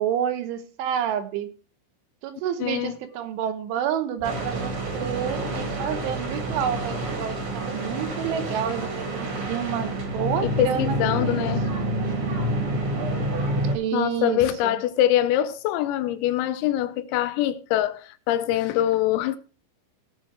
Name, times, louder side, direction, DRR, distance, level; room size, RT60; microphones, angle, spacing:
voice 1, 0.0-1.5 2.2-11.5 13.7-14.8, right 9 dB, 75° right, 3.4 m, -29 dB
voice 2, 2.6-2.9 10.4-11.7 13.9-19.4, left 12 dB, 90° left, 3.6 m, -24 dB
sound 1, 4.2-15.2, right 4 dB, 55° left, 1.2 m, -42 dB
sound 2, 4.2-13.8, right 1 dB, 40° right, 2.3 m, -28 dB
17.5 x 6.4 x 4.7 m
omnidirectional pair, 5.9 m